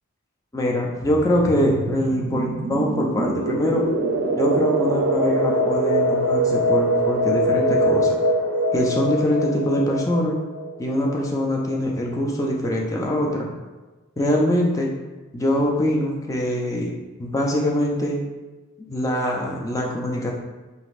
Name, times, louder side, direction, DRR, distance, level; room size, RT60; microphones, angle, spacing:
voice 1, 0.5-3.9 4.4-8.1 8.7-10.4 10.8-13.5 14.2-14.9 15.3-16.9 17.2-18.2 18.9-20.3, equal, 15° left, -1 dB, 0.4 m, -23 dB
sound 1, 1.0-11.5, right 1 dB, 65° right, 0.4 m, -23 dB
3.8 x 2.6 x 2.4 m, 1.2 s
head